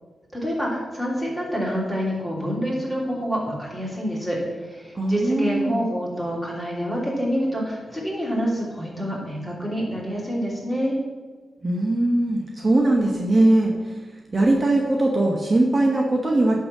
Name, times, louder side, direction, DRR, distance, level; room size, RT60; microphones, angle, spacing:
voice 1, 0.3-11.0, equal, 10° left, -4 dB, 3.0 m, -27 dB
voice 2, 4.9-5.8 11.6-13.7 14.3-16.6, right 2 dB, 30° right, -1 dB, 1.2 m, -20 dB
11.0 x 3.8 x 7.4 m, 1.4 s
wide cardioid pair, 110°, 0 cm